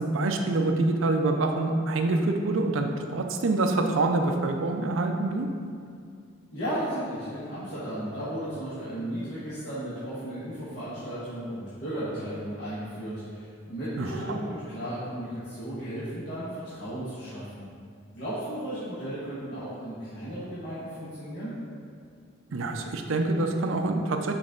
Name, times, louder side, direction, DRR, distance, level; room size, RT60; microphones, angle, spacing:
voice 1, 0.0-5.5 14.0-14.4 22.5-24.3, right 2 dB, 70° right, 4 dB, 0.5 m, -26 dB
voice 2, 6.5-17.7 18.1-21.5, right 1 dB, 55° left, -12 dB, 1.4 m, -35 dB
6.1 x 4.2 x 3.8 m, 2.2 s
head